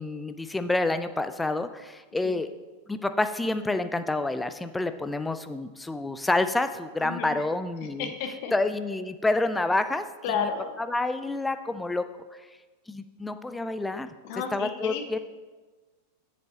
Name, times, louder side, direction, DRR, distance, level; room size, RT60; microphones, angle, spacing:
voice 1, 0.0-2.5 2.9-8.1 8.5-10.5 10.9-12.0 12.9-14.1 14.5-15.2, left 2 dB, 10° left, 10 dB, 0.4 m, -28 dB
voice 2, 7.0-7.4 7.8-8.5 10.2-10.7 14.2-15.2, left 6 dB, 45° left, 5 dB, 0.9 m, -32 dB
7.4 x 7.2 x 2.8 m, 1.3 s
figure-of-eight pair, 90°, 0 cm